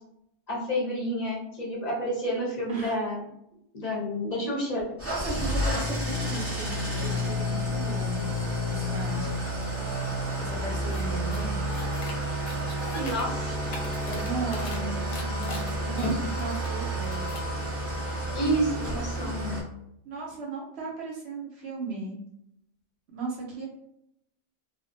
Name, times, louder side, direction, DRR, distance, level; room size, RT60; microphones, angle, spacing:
voice 1, 0.5-3.2 3.7-4.8 9.2-9.3 12.9-13.6 16.0-16.1 18.3-19.6, equal, 45° left, -4 dB, 0.6 m, -29 dB
Engine starting / Idling, 5.0-19.6, equal, 15° right, 0.7 m, -30 dB
voice 2, 5.1-8.2 8.7-9.3 10.4-11.7 14.0-17.3 20.0-22.1 23.1-23.7, right 3 dB, 65° right, -2 dB, 0.8 m, -36 dB
sound 1, 10.9-11.0 11.3-12.1 12.4-13.2 13.6-14.8 15.1-16.7 17.0-17.5, left 2 dB, 85° left, 1.0 m, -42 dB
2.3 x 2.1 x 2.6 m, 0.76 s
omnidirectional pair, 1.4 m